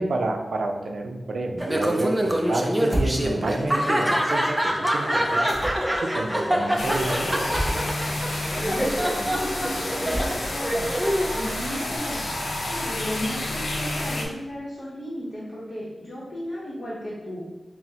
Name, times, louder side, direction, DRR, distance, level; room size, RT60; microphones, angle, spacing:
voice 1, 0.0-5.5 5.9-7.5, right 2 dB, 70° right, 4 dB, 0.4 m, -29 dB
Laughter, 1.6-12.0, equal, 5° right, 0.4 m, -26 dB
sound 1, 2.9-3.2 5.5-6.0 7.5-7.8 10.1-10.6, equal, 10° left, 0.8 m, -27 dB
sound 2, 6.8-14.2, left 1 dB, 70° left, 0.6 m, -30 dB
voice 2, 8.6-10.9 11.3-12.2 12.6-17.4, equal, 35° left, -8 dB, 0.8 m, -34 dB
6.0 x 2.0 x 2.8 m, 1.1 s
wide cardioid pair, 135°, 0 cm